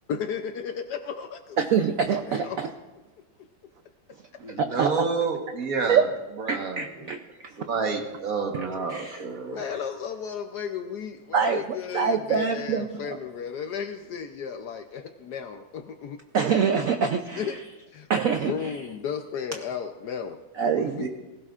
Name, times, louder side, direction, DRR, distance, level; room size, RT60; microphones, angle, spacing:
voice 1, 0.1-1.4 2.3-2.6 9.4-16.2 17.4-17.6 17.9-18.1 18.4-20.4 20.7-21.1, left 7 dB, 65° left, 7 dB, 1.0 m, -34 dB
voice 2, 2.1-2.7 4.6-4.9 5.9-6.0 6.5-7.2 8.9-9.2 11.3-11.6 11.9-13.2 16.3-17.5 18.1-18.7 20.6-21.1, right 6 dB, 75° right, 6 dB, 0.7 m, -25 dB
voice 3, 4.4-6.1 6.4-7.1 7.7-9.6 21.0-21.1, right 4 dB, 50° right, 3 dB, 1.6 m, -29 dB
18.5 x 16.5 x 2.5 m, 1.1 s
omnidirectional pair, 2.2 m